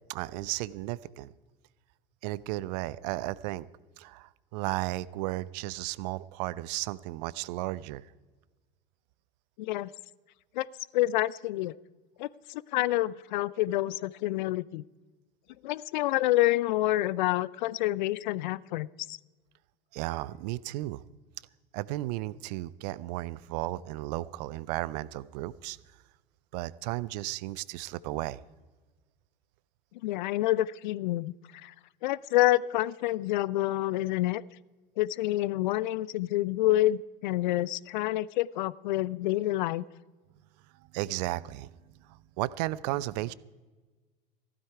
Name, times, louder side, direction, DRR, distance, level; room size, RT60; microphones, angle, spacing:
voice 1, 0.1-1.3 2.2-3.7 4.0-8.1 19.9-21.0 21.7-25.8 26.5-28.4 40.9-41.7 42.0-43.3, right 17 dB, 45° right, 20 dB, 0.5 m, -34 dB
voice 2, 9.6-9.9 10.5-10.7 10.9-11.7 12.2-14.8 15.6-19.2 30.0-31.7 32.0-34.4 35.0-39.8, left 16 dB, 55° left, 22 dB, 0.4 m, -28 dB
15.0 x 12.5 x 4.7 m, 1.2 s
figure-of-eight pair, 85°, 29 cm